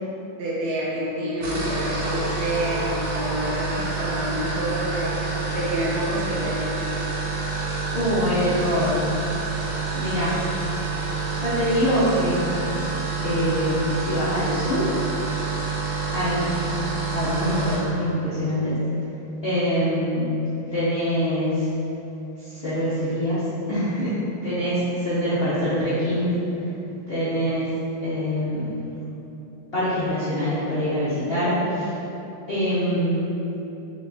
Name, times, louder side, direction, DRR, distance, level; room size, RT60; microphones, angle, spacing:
voice 1, 0.4-5.2 5.5-6.7, equal, 90° right, -7 dB, 1.4 m, -28 dB
sound 1, 1.3-17.9, right 4 dB, 60° right, 0.7 m, -28 dB
voice 2, 7.9-9.1 9.9-10.4 11.3-12.4 13.2-14.9 16.1-16.5 17.1-18.8 19.4-20.4 20.7-21.7 22.4-23.4 23.7-24.1 24.4-26.3 27.1-27.7 28.0-28.7 29.7-31.9 32.5-33.3, equal, 75° left, -11 dB, 0.5 m, -24 dB
5.9 x 2.3 x 2.5 m, 2.9 s
omnidirectional pair, 2.1 m